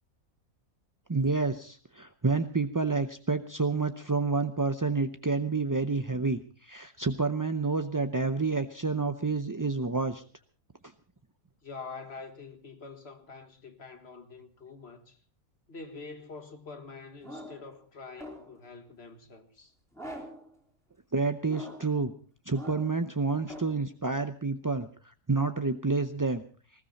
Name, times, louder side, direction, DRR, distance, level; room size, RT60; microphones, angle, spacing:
voice 1, 1.1-10.2 21.1-22.1 22.5-26.4, right 4 dB, 30° right, 0.4 m, -29 dB
voice 2, 11.6-15.2 15.7-19.7, left 4 dB, 45° left, 1.8 m, -45 dB
sound 1, 17.2-17.7 18.2-18.7 19.9-20.5 21.4-22.0 22.5-23.0 23.5-23.8, equal, ahead, 3.3 m, -43 dB
20.0 x 16.0 x 4.2 m
omnidirectional pair, 1.5 m